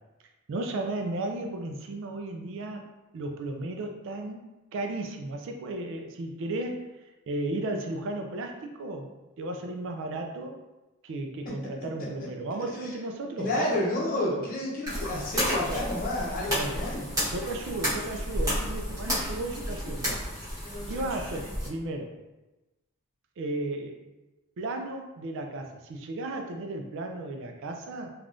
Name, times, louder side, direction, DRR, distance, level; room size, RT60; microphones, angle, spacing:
voice 1, 0.5-2.8 3.1-4.5 4.7-9.1 9.4-10.6 11.0-14.5 15.7-15.9 16.5-16.8 17.1-20.2 20.9-22.2 23.4-24.0 24.6-28.1, right 2 dB, 60° right, 4 dB, 0.4 m, -34 dB
voice 2, 13.4-17.1, left 1 dB, 40° left, -4 dB, 0.8 m, -30 dB
sound 1, 14.9-21.7, equal, 15° right, 1.1 m, -32 dB
3.3 x 2.3 x 2.5 m, 1.0 s
head